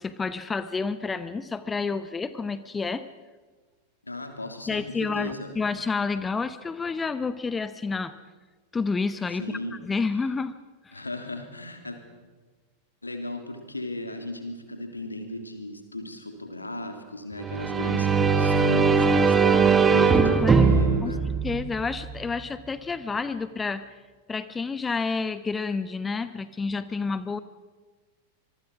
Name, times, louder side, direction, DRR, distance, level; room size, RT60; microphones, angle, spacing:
voice 1, 0.0-3.0 4.7-8.1 8.7-10.5 10.8-11.0 20.2-20.7 21.0-21.1 21.4-23.8 24.3-27.4, left 4 dB, 15° left, 14 dB, 0.9 m, -29 dB
voice 2, 4.0-5.5 9.4-9.8 10.9-12.0 13.0-21.2, left 2 dB, 80° left, 6 dB, 3.1 m, -35 dB
sound 1, 17.4-22.2, right 5 dB, 15° right, 1.6 m, -20 dB
25.5 x 22.5 x 6.1 m, 1.3 s
figure-of-eight pair, 90°, 0 cm